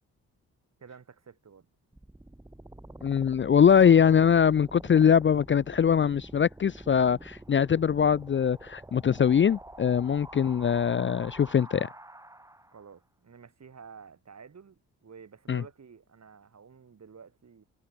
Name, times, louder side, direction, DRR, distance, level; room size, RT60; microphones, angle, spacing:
voice 1, 0.8-1.7 12.7-17.7, right 6 dB, 50° right, 5.2 m, -51 dB
sound 1, 1.9-12.9, right 1 dB, 10° right, 1.6 m, -47 dB
voice 2, 3.0-11.9 15.5-15.6, left 8 dB, 35° left, 0.6 m, -22 dB
hypercardioid pair, 45°, 35 cm